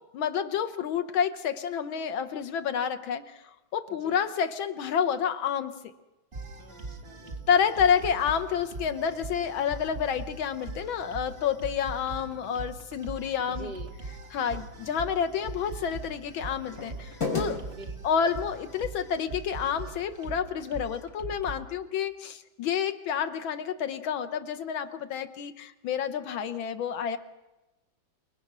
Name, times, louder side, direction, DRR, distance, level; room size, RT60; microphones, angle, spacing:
voice 1, 0.1-5.9 7.5-13.7 14.3-17.6 18.0-27.2, left 7 dB, 80° left, 10 dB, 1.8 m, -29 dB
voice 2, 3.9-4.2 6.6-7.8 13.5-13.9 17.6-18.3, right 3 dB, 55° right, 3 dB, 2.3 m, -46 dB
sound 1, 6.3-21.6, right 3 dB, 30° right, 2.3 m, -41 dB
sound 2, 8.2-18.5, left 4 dB, 50° left, 5.2 m, -42 dB
29.5 x 19.0 x 6.1 m, 1.0 s
omnidirectional pair, 2.1 m